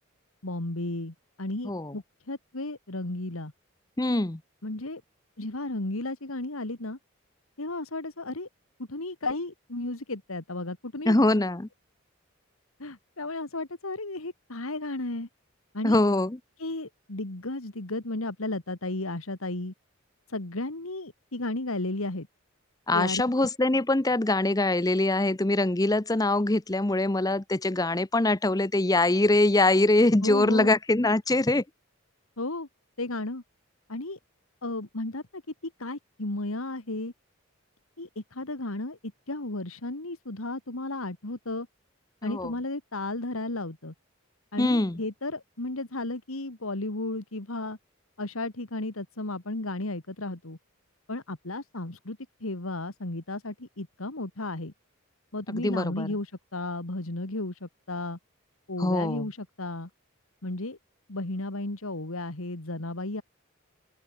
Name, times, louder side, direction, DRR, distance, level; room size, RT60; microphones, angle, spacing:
voice 1, 0.4-3.5 4.6-5.0 5.4-7.0 7.6-8.5 8.8-11.2 12.8-15.3 15.7-16.0 16.6-19.7 20.3-22.3 22.9-23.5 30.2-30.7 32.4-32.7 33.0-33.4 33.9-34.2 34.6-37.1 38.0-41.7 42.2-43.9 44.5-47.8 48.2-50.6 51.1-54.7 55.3-58.2 58.7-59.9 60.4-60.8 61.1-63.2, left 2 dB, 80° left, 2.3 m, -34 dB
voice 2, 4.0-4.4 11.1-11.7 15.8-16.4 22.9-31.6 42.2-42.5 44.6-45.0 55.5-56.1 58.8-59.3, left 2 dB, 15° left, 0.7 m, -23 dB
open air
head